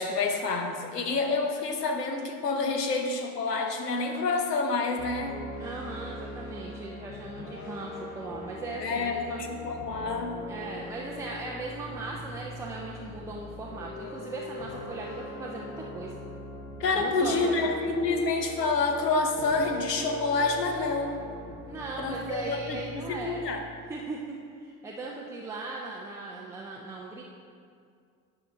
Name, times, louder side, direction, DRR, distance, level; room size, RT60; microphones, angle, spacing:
voice 1, 0.0-5.4 8.8-10.4 16.8-21.2 22.0-23.6, left 3 dB, 80° left, 4 dB, 0.9 m, -28 dB
sound 1, 5.0-24.2, left 2 dB, 35° left, 1.5 m, -42 dB
voice 2, 5.6-9.4 10.5-16.1 17.0-17.8 21.7-23.4 23.9-24.4 24.6-27.2, right 3 dB, 5° right, -3 dB, 0.3 m, -38 dB
10.0 x 5.6 x 3.7 m, 2.2 s
figure-of-eight pair, 70°, 47 cm